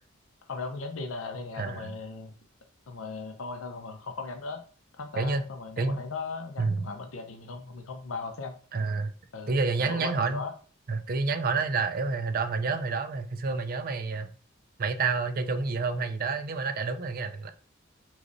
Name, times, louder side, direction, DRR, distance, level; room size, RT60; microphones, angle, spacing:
voice 1, 0.5-2.3 2.9-4.6 5.0-8.6 9.3-10.5, left 4 dB, 75° left, 0.6 m, -37 dB
voice 2, 1.6-1.9 5.2-5.5 5.8-6.0 6.6-6.9 8.7-9.1 9.5-10.4 10.9-14.3 14.8-17.5, right 4 dB, 45° right, 0.4 m, -29 dB
4.8 x 3.1 x 2.6 m
head